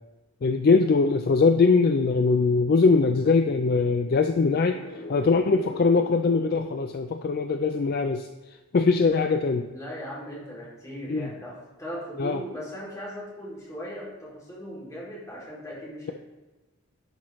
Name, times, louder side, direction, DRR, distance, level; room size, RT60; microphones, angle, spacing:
voice 1, 0.4-4.8 5.1-8.3 8.7-9.7 11.1-11.3 12.2-12.4, left 4 dB, 45° left, 7 dB, 0.3 m, -21 dB
sound 1, 4.1-7.9, left 3 dB, 65° left, 1.0 m, -43 dB
voice 2, 9.7-16.1, equal, 15° left, -6 dB, 2.6 m, -38 dB
11.0 x 5.8 x 3.1 m, 1.2 s
head